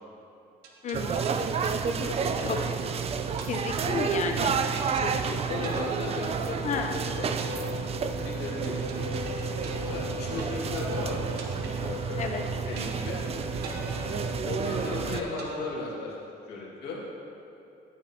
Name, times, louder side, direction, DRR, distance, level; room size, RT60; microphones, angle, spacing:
sound 1, 0.6-2.9 3.4-4.4 4.8-5.3 5.6-6.9 7.4-10.9 11.4-12.4 12.8-13.3 13.6-14.9 15.4-16.4, right 4 dB, 75° right, 1.0 m, -45 dB
voice 1, 0.8-1.4 2.5-2.6 3.5-4.6 4.9-5.2 6.6-7.0 12.2-12.4, left 5 dB, 45° left, 4 dB, 0.6 m, -32 dB
sound 2, 0.9-15.2, right 6 dB, 35° right, 0.4 m, -30 dB
voice 2, 1.9-2.6 5.2-7.3 7.8-9.1 9.8-11.2 11.8-12.3 12.7-13.2 14.5-16.1 16.5-17.0, left 3 dB, 75° left, -5 dB, 2.1 m, -36 dB
Harmonica, 7.3-14.6, left 6 dB, 10° right, 1.5 m, -40 dB
9.8 x 8.7 x 2.8 m, 2.7 s
cardioid pair, 110°, 17 cm